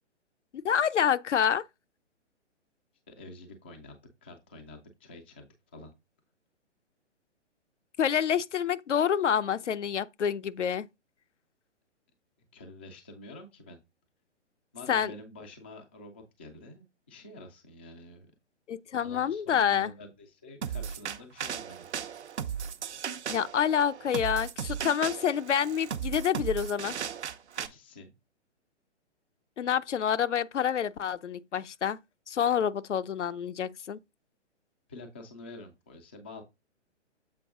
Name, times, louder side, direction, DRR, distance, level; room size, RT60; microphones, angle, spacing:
voice 1, 0.5-1.6 8.0-10.9 14.9-15.1 18.7-19.9 23.3-27.0 29.6-32.0 32.3-34.0, left 8 dB, 75° left, 0.7 m, -27 dB
voice 2, 3.1-5.9 12.5-13.8 14.7-18.3 18.9-21.9 27.6-28.1 34.9-36.4, left 2 dB, 10° left, 0.3 m, -48 dB
sound 1, 20.6-27.7, right 8 dB, 70° right, 0.9 m, -36 dB
7.5 x 4.6 x 3.6 m
figure-of-eight pair, 130°, 36 cm